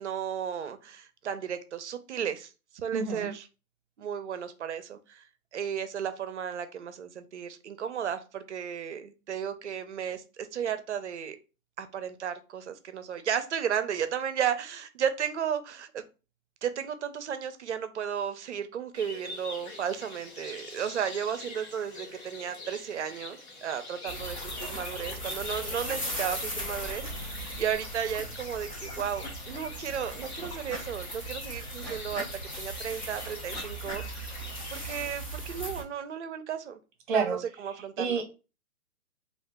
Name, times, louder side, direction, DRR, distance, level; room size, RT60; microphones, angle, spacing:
voice 1, 0.0-3.5 4.0-5.3 5.5-11.4 11.8-16.0 16.6-32.3 32.6-34.4 34.7-36.8 37.1-38.2, right 8 dB, 50° right, 10 dB, 0.6 m, -34 dB
voice 2, 2.9-3.3 37.1-37.4 38.0-38.2, right 5 dB, 35° right, 4 dB, 1.0 m, -28 dB
sound 1, 18.9-35.2, left 2 dB, 45° left, 1.0 m, -44 dB
sound 2, 24.1-35.8, equal, 25° left, 0.5 m, -38 dB
2.8 x 2.5 x 3.4 m, 0.32 s
hypercardioid pair, 150°, 45 cm